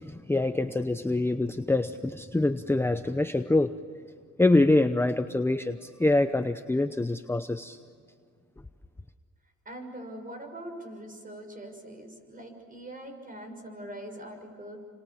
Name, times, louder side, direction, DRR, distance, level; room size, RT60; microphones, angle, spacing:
voice 1, 0.0-3.8 4.4-7.8, left 2 dB, 10° left, 9 dB, 0.8 m, -25 dB
voice 2, 9.6-14.8, right 1 dB, 30° right, 5 dB, 6.6 m, -42 dB
29.5 x 26.0 x 7.3 m, 2.1 s
cardioid pair, 90°, 30 cm